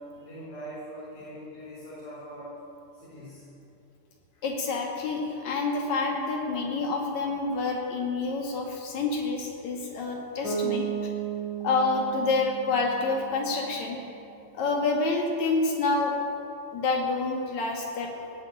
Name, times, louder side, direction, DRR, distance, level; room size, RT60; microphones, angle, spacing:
voice 1, 0.1-2.5 2.9-3.4 4.3-4.4, right 1 dB, 85° left, -11 dB, 6.2 m, -42 dB
voice 2, 4.4-10.8 11.6-14.0 14.5-16.2 16.7-18.1, left 3 dB, 60° left, 0 dB, 3.2 m, -28 dB
Bass guitar, 10.4-14.3, right 7 dB, 30° left, 4.6 m, -34 dB
18.0 x 7.8 x 9.0 m, 2.7 s
omnidirectional pair, 3.8 m